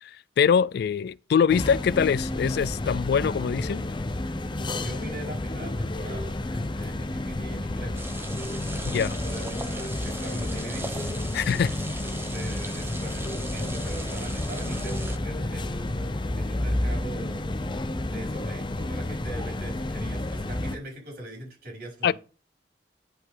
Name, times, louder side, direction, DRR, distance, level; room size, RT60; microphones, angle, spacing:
voice 1, 0.0-3.8 8.8-9.1 11.3-11.7 22.0-22.1, left 7 dB, 60° left, 0.3 m, -23 dB
sound 1, 1.5-20.8, left 1 dB, 25° left, 0.7 m, -31 dB
voice 2, 4.8-8.0 8.9-11.4 12.3-17.6 18.1-22.1, right 1 dB, 60° right, 5.1 m, -41 dB
sound 2, 8.0-15.2, right 2 dB, 15° right, 1.0 m, -39 dB
10.5 x 5.5 x 3.7 m
head